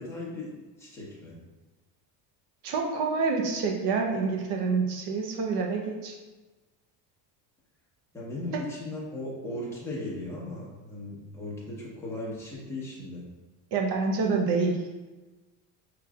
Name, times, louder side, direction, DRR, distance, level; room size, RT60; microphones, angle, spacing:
voice 1, 0.0-1.4 8.1-13.3, left 1 dB, 5° left, -7 dB, 1.1 m, -37 dB
voice 2, 2.6-6.1 8.5-8.6 13.7-14.8, right 4 dB, 60° right, 1 dB, 0.9 m, -27 dB
5.7 x 3.1 x 2.4 m, 1.2 s
cardioid pair, 150°, 45 cm